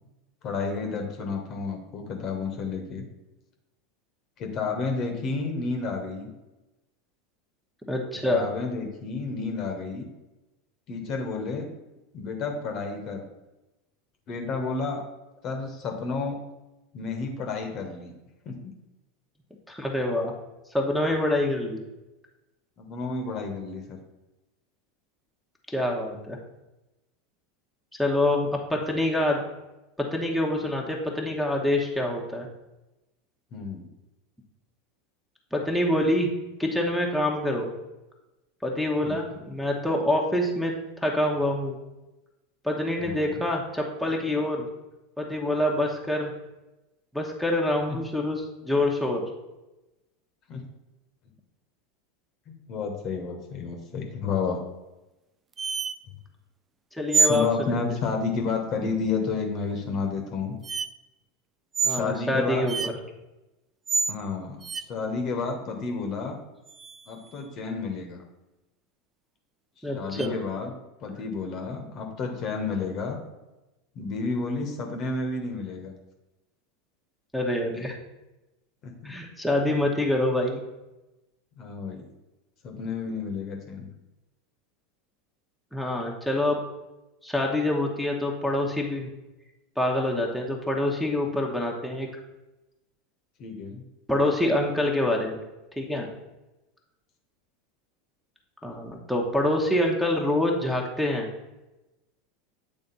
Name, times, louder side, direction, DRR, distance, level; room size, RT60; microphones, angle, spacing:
voice 1, 0.4-3.0 4.4-6.3 8.2-10.1 10.9-11.7 12.1-13.2 14.3-15.0 15.4-16.4 16.9-18.1 18.4-18.7 22.8-24.0 33.5-33.9 39.0-39.2 43.0-43.4 47.9-48.0 50.5-50.6 52.5-54.6 57.2-60.6 61.9-62.7 64.1-64.6 64.9-66.4 67.1-68.2 69.9-70.7 71.0-73.2 73.9-75.9 77.8-77.9 78.8-79.1 81.6-82.0 82.6-83.9 93.4-93.8, left 4 dB, 45° left, 3 dB, 1.1 m, -31 dB
voice 2, 7.9-8.5 19.7-20.3 20.7-21.8 25.7-26.4 28.0-29.4 30.0-32.5 35.5-36.3 36.6-37.7 38.6-41.8 42.6-44.7 45.2-46.3 47.1-49.2 56.9-57.9 61.8-62.9 69.8-70.4 77.3-77.9 79.0-80.6 85.7-86.6 87.2-89.1 89.8-92.1 94.1-95.4 95.8-96.1 98.6-101.3, left 1 dB, ahead, -2 dB, 1.1 m, -26 dB
sound 1, 55.6-56.0 57.1-57.5 59.7-59.8 60.6-60.9 61.7-62.0 62.7-62.9 63.9-64.2 64.6-64.8 66.7-67.3 70.2-70.3, right 5 dB, 25° right, 0.3 m, -26 dB
8.5 x 3.5 x 4.1 m, 1.0 s
figure-of-eight pair, 80°, 0 cm